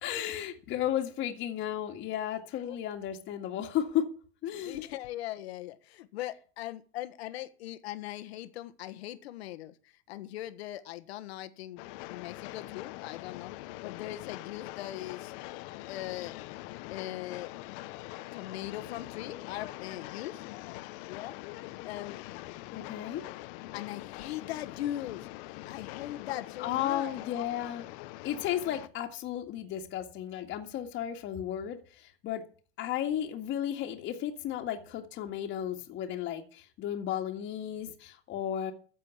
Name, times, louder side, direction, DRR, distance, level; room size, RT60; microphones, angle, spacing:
voice 1, 0.0-4.1 4.4-4.8 22.7-23.2 26.6-27.9 28.2-32.4 32.8-38.7, left 10 dB, 35° left, 2 dB, 2.0 m, -34 dB
voice 2, 4.6-9.7 10.1-13.5 13.8-15.3 15.9-16.3 16.9-17.5 18.3-20.4 21.1-21.3 21.8-22.2 23.7-27.1, left 14 dB, 75° left, 11 dB, 1.6 m, -40 dB
Train, 11.8-28.9, left 18 dB, 55° left, 1.0 m, -43 dB
13.5 x 7.6 x 8.5 m, 0.40 s
supercardioid pair, 140°, 32 cm